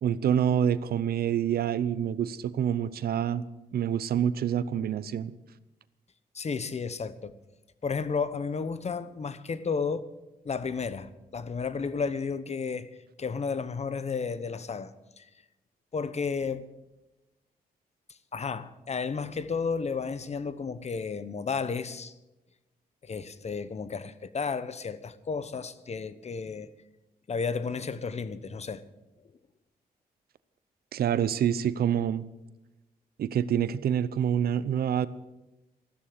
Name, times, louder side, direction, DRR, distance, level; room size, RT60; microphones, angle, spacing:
voice 1, 0.0-3.4 3.7-5.3 30.9-32.2 33.2-35.1, right 9 dB, 80° right, 0.7 m, -27 dB
voice 2, 6.3-7.3 7.8-10.1 10.4-14.9 15.2-15.3 15.9-16.7 18.3-22.1 23.0-26.7 27.3-28.8, left 5 dB, 45° left, 1.0 m, -32 dB
14.0 x 12.5 x 6.6 m
cardioid pair, 80°, 16 cm